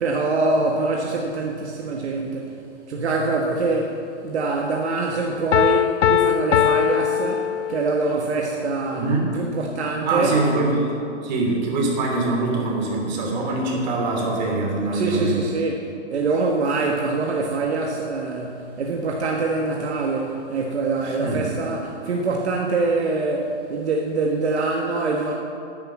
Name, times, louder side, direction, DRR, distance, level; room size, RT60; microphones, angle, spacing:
voice 1, 0.0-2.6 2.9-4.0 4.2-9.1 9.3-10.4 14.9-25.3, right 3 dB, 65° right, 0 dB, 1.5 m, -24 dB
Piano, 5.5-8.1, left 10 dB, 85° left, 0.6 m, -20 dB
voice 2, 8.9-9.3 10.0-10.9 11.2-15.4 21.0-21.4, right 2 dB, 40° right, 0 dB, 3.1 m, -23 dB
10.5 x 9.9 x 7.4 m, 2.7 s
hypercardioid pair, 155°, 35 cm